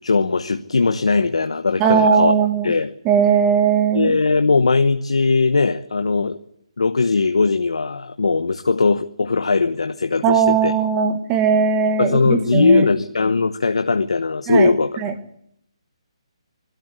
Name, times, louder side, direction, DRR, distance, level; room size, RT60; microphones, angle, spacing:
voice 1, 0.0-2.3 2.6-2.9 3.9-6.4 6.8-10.8 12.0-15.0, left 4 dB, 90° left, 9 dB, 1.0 m, -19 dB
voice 2, 1.8-2.7 3.1-4.1 10.2-12.9 14.5-14.7 15.0-15.1, right 7 dB, 20° right, 7 dB, 1.8 m, -18 dB
23.0 x 13.0 x 9.7 m, 0.71 s
hypercardioid pair, 165°, 3 cm